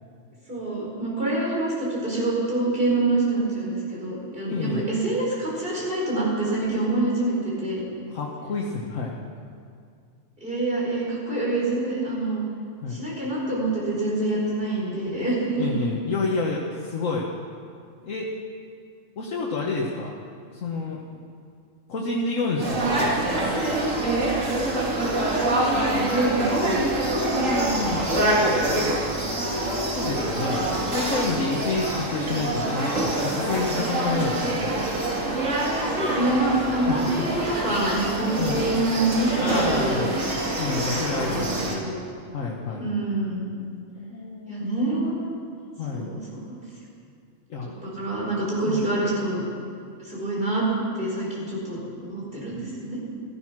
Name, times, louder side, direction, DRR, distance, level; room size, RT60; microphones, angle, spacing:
voice 1, 0.5-7.9 10.4-12.4 12.9-15.7 25.4-26.9 27.4-27.6 35.7-40.1 41.1-42.0 42.8-43.4 44.5-45.4 45.9-46.6 47.8-49.4 50.0-50.7 50.9-53.0, right 2 dB, 40° right, -5 dB, 5.0 m, -26 dB
voice 2, 4.5-4.8 8.1-9.1 12.8-13.0 15.6-17.3 18.0-18.3 19.2-20.1 20.5-21.2 21.9-23.2 27.3-28.0 29.8-34.7 36.9-37.1 38.4-38.6 39.4-40.1 40.6-41.6 42.3-42.9 44.0-44.7 45.8-46.1 47.5-47.7 48.7-48.8, left 3 dB, 75° left, -2 dB, 1.6 m, -29 dB
sound 1, 22.6-41.7, right 1 dB, 75° right, 2.9 m, -25 dB
15.5 x 14.0 x 6.0 m, 2.3 s
omnidirectional pair, 1.4 m